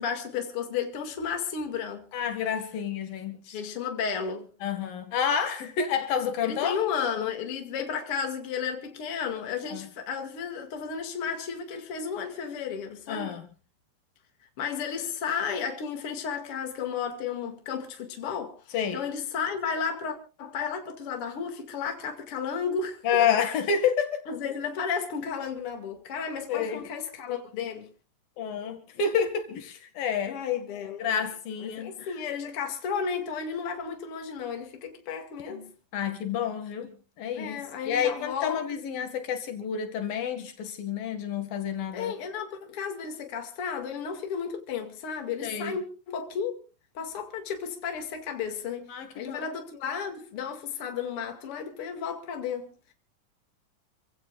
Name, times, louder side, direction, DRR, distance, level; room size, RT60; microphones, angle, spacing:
voice 1, 0.0-2.0 3.5-4.5 6.4-13.4 14.6-18.6 18.9-23.0 24.3-27.9 30.2-31.0 31.6-35.6 37.3-38.8 41.9-46.5 46.9-52.9, left 6 dB, 45° left, 2.8 m, -33 dB
voice 2, 2.1-3.6 4.6-6.8 9.7-9.9 13.1-13.5 18.7-19.0 23.0-24.3 26.5-26.8 28.4-30.4 31.0-32.2 35.5-42.1 45.4-45.8 48.9-49.5, left 7 dB, 80° left, 3.7 m, -29 dB
28.5 x 16.0 x 2.5 m
omnidirectional pair, 4.0 m